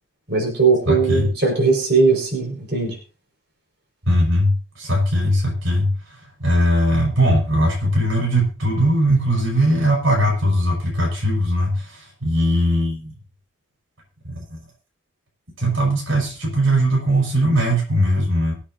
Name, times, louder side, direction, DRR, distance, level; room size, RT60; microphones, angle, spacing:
voice 1, 0.3-3.0, right 4 dB, 55° right, 1 dB, 5.0 m, -19 dB
voice 2, 0.9-1.3 4.1-5.9 6.4-13.1 14.2-14.6 15.6-18.5, equal, 90° right, -1 dB, 5.4 m, -19 dB
24.5 x 8.6 x 2.7 m, 0.35 s
head